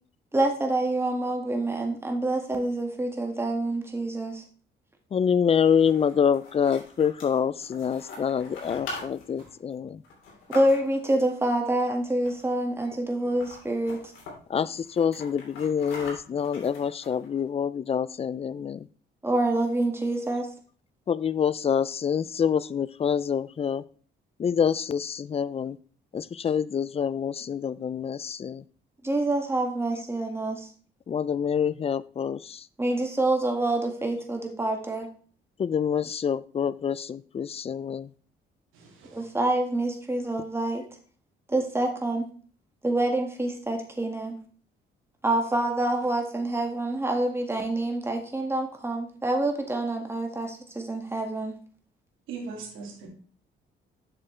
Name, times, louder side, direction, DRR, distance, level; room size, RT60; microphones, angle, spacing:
voice 1, 0.3-4.4 10.5-14.0 19.2-20.5 29.0-30.7 32.8-35.1 39.1-40.8 41.5-42.3 42.8-44.3 45.2-51.5, right 2 dB, 10° right, 1.8 m, -27 dB
voice 2, 5.1-10.0 14.5-18.9 21.1-23.8 24.4-25.8 26.1-28.6 31.1-32.7 35.6-38.1, left 7 dB, 30° left, 0.3 m, -26 dB
sound 1, 5.5-11.1 12.2-12.6 12.9-13.0 13.3-14.3 14.8-17.4, left 3 dB, 80° left, 3.1 m, -43 dB
voice 3, 38.7-39.2 52.3-53.1, right 4 dB, 90° right, 2.2 m, -39 dB
7.4 x 6.7 x 3.3 m
cardioid pair, 90°, 20 cm